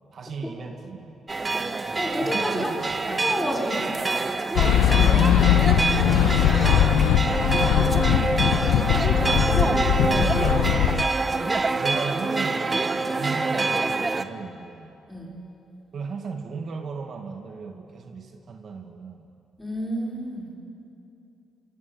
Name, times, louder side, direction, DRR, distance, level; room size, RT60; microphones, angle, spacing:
voice 1, 0.1-1.1 2.2-3.3 4.6-7.1 9.0-11.0 11.5-14.9 15.9-19.3, right 5 dB, 55° right, 4 dB, 2.2 m, -35 dB
sound 1, 1.3-14.2, right 3 dB, 25° right, 1.3 m, -26 dB
voice 2, 2.0-2.8 3.1-3.9 7.8-8.0 15.1-15.4 19.6-20.5, equal, 10° left, -1 dB, 5.8 m, -30 dB
sound 2, 4.6-11.0, left 10 dB, 90° left, 1.0 m, -20 dB
26.0 x 24.5 x 8.7 m, 2.7 s
cardioid pair, 90°, 0 cm